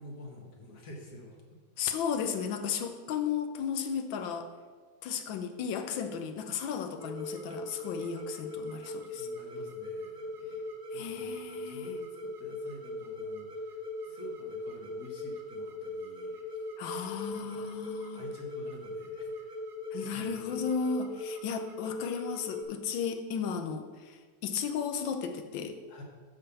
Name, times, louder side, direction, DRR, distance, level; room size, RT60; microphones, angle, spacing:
voice 1, 0.0-1.6 8.8-10.6 10.9-16.7 17.4-17.7 18.1-19.6 20.0-20.8 25.9-26.0, left 1 dB, 55° left, 0 dB, 1.7 m, -49 dB
voice 2, 1.8-4.5 5.0-9.3 10.9-11.9 16.8-18.2 19.9-25.8, left 6 dB, 85° left, 6 dB, 1.5 m, -34 dB
sound 1, 7.0-22.6, left 2 dB, 35° right, 0.9 m, -40 dB
10.0 x 3.6 x 6.8 m, 1.5 s
omnidirectional pair, 2.0 m